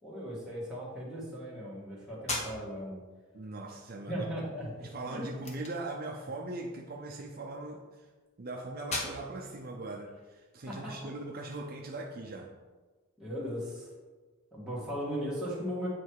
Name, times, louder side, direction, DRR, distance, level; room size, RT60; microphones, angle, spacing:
voice 1, 0.0-3.0 4.1-5.3 10.7-10.9 13.2-13.9 14.5-15.9, equal, 5° right, -7 dB, 1.9 m, -37 dB
sound 1, 2.2-11.1, left 2 dB, 35° left, 1.0 m, -43 dB
voice 2, 3.3-4.3 4.8-8.1 8.4-12.5, right 2 dB, 45° right, 0 dB, 0.6 m, -40 dB
8.8 x 3.2 x 4.7 m, 1.3 s
head